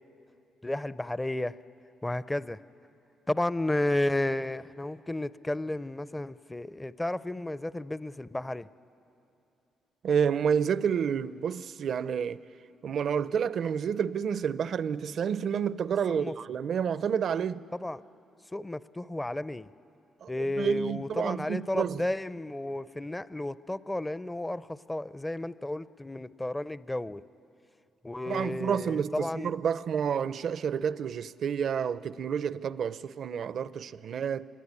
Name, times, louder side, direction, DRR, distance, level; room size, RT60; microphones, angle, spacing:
voice 1, 0.6-1.6 2.0-2.6 3.3-8.7 16.1-16.3 17.7-18.0 18.5-19.7 20.3-27.2 28.0-29.5, left 1 dB, 15° left, 0.5 m, -32 dB
voice 2, 10.0-12.4 12.8-17.6 20.2-20.3 20.6-22.1 28.3-34.5, right 7 dB, 60° right, 0.6 m, -29 dB
25.5 x 21.5 x 9.7 m
cardioid pair, 90°, 0 cm